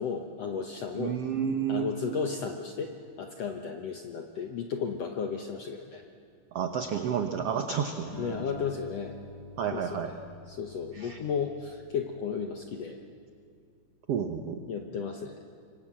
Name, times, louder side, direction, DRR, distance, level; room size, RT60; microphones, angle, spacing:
voice 1, 0.0-1.2 1.7-6.0 8.2-9.2 9.7-10.2 10.5-13.0 14.7-15.3, left 6 dB, 70° left, 4 dB, 1.6 m, -34 dB
voice 2, 0.9-1.9 6.5-8.1 9.6-10.1 10.9-11.2 14.1-14.6, right 8 dB, 75° right, 6 dB, 1.4 m, -30 dB
Acoustic guitar, 8.1-12.6, equal, 25° left, 8.1 m, -46 dB
26.5 x 24.0 x 7.5 m, 2.2 s
omnidirectional pair, 4.3 m